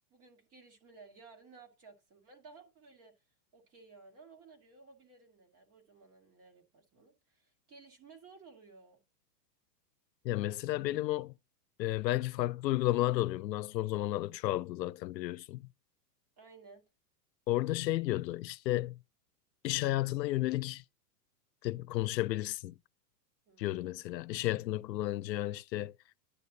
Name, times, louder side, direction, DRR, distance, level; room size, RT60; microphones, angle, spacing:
voice 1, 0.1-3.2 3.5-9.0 12.1-12.3 16.4-16.8 23.5-24.0, right 4 dB, 30° right, 2.1 m, -57 dB
voice 2, 10.2-11.3 11.8-15.7 17.5-18.9 19.6-20.8 21.6-22.7 23.6-25.9, left 16 dB, 90° left, 0.6 m, -32 dB
10.0 x 6.7 x 2.8 m
hypercardioid pair, 140°, 49 cm